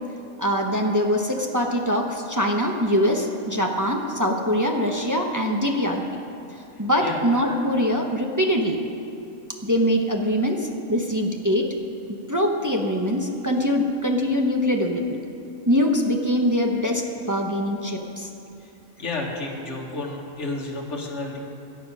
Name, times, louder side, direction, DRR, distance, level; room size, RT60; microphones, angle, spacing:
voice 1, 0.4-6.0 6.8-8.8 9.6-11.7 12.3-15.2 15.7-18.3, equal, 15° right, 1 dB, 0.9 m, -23 dB
voice 2, 19.0-21.4, left 2 dB, 55° left, -2 dB, 2.0 m, -31 dB
17.5 x 11.0 x 5.5 m, 2.8 s
omnidirectional pair, 1.5 m